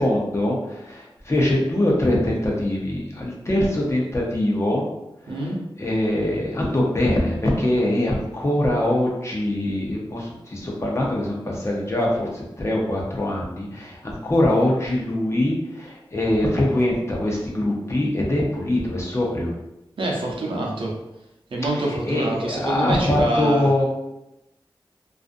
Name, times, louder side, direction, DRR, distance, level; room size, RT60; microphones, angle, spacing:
voice 1, 0.0-4.8 5.2-5.5 5.8-19.5 21.9-23.8, left 1 dB, 30° left, -3 dB, 0.7 m, -23 dB
voice 2, 5.3-5.6 20.0-20.9 21.5-23.7, right 1 dB, 75° right, -2 dB, 0.6 m, -25 dB
2.4 x 2.4 x 2.5 m, 0.90 s
wide cardioid pair, 80°, 9 cm